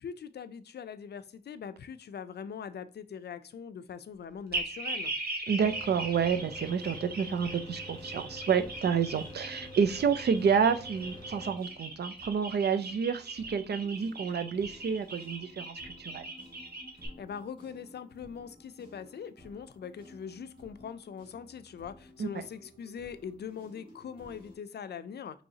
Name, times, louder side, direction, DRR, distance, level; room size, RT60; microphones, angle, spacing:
voice 1, 0.0-5.2 17.2-25.4, left 7 dB, 90° left, 13 dB, 0.4 m, -42 dB
sound 1, 4.5-17.1, right 2 dB, 70° right, 1.0 m, -39 dB
voice 2, 5.5-16.2 22.2-22.3, right 6 dB, 90° right, 11 dB, 0.4 m, -29 dB
Mechanical fan, 5.6-11.6, left 1 dB, 25° left, 1.0 m, -47 dB
sound 2, 5.9-24.6, left 1 dB, 30° right, 1.8 m, -55 dB
5.5 x 3.0 x 2.7 m, 0.38 s
wide cardioid pair, 110°, 17 cm